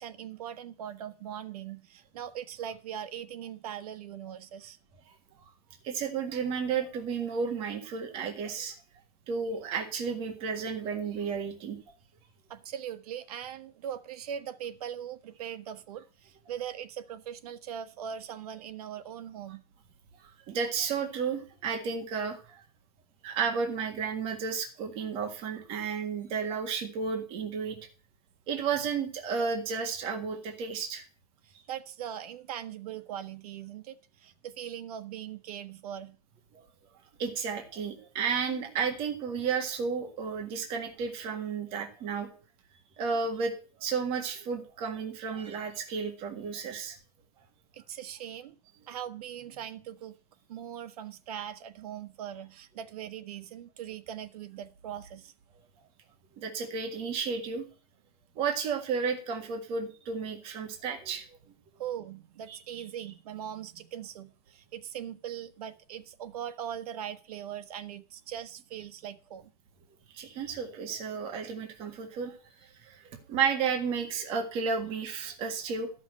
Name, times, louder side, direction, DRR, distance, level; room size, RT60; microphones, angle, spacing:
voice 1, 0.0-4.8 12.5-19.6 31.4-36.2 47.7-48.6 48.9-50.2 50.5-55.3 61.8-69.5, right 9 dB, 75° right, 1.2 m, -40 dB
voice 2, 5.8-8.7 9.3-11.8 20.5-22.6 23.2-27.8 28.5-31.0 37.2-42.3 43.0-43.5 43.8-47.0 56.4-57.7 58.4-61.4 62.5-62.8 70.1-72.4 72.6-75.9, right 6 dB, 30° right, 1.8 m, -32 dB
12.5 x 6.1 x 7.6 m
supercardioid pair, 175°, 19 cm